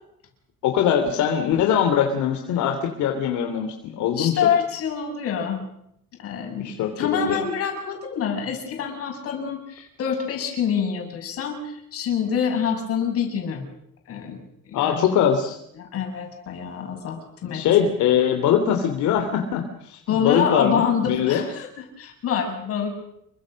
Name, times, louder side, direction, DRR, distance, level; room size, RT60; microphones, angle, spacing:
voice 1, 0.6-4.3 6.6-7.4 14.7-15.6 17.4-21.4, left 9 dB, 70° left, 4 dB, 3.1 m, -22 dB
voice 2, 4.2-5.6 6.2-13.6 14.1-15.1 15.8-17.6 20.1-23.0, left 7 dB, 50° left, 3 dB, 6.8 m, -26 dB
27.5 x 23.5 x 6.5 m, 0.77 s
cardioid pair, 165°, 31 cm